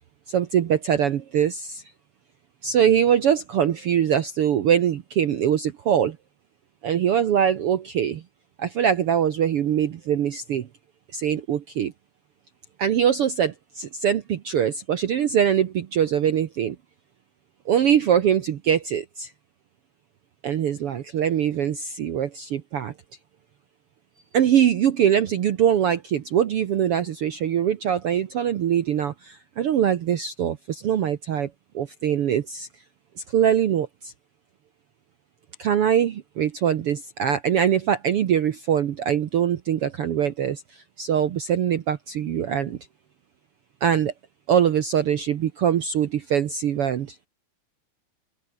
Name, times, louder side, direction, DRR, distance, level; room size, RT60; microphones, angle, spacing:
voice 1, 0.3-1.8 2.6-6.2 6.8-8.2 8.6-10.7 11.1-11.9 12.8-16.8 17.7-19.3 20.4-22.9 24.3-31.5 31.7-32.7 33.3-34.1 35.6-42.8 43.8-44.1 44.5-47.2, right 9 dB, 70° right, 1.4 m, -23 dB
omnidirectional pair, 4.0 m